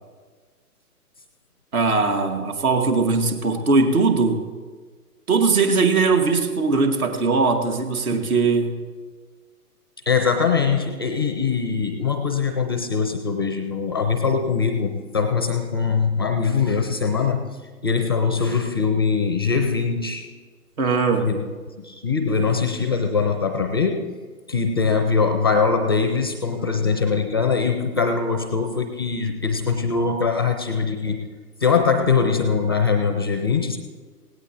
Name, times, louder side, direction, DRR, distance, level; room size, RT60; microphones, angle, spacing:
voice 1, 1.7-4.4 5.3-8.7 20.8-21.3, right 4 dB, 65° right, 6 dB, 1.9 m, -20 dB
voice 2, 10.1-17.4 17.8-20.3 21.2-21.4 21.8-24.1 24.5-31.2 31.6-33.8, left 5 dB, 15° left, 7 dB, 0.4 m, -22 dB
18.0 x 17.0 x 2.9 m, 1.5 s
figure-of-eight pair, 135°, 46 cm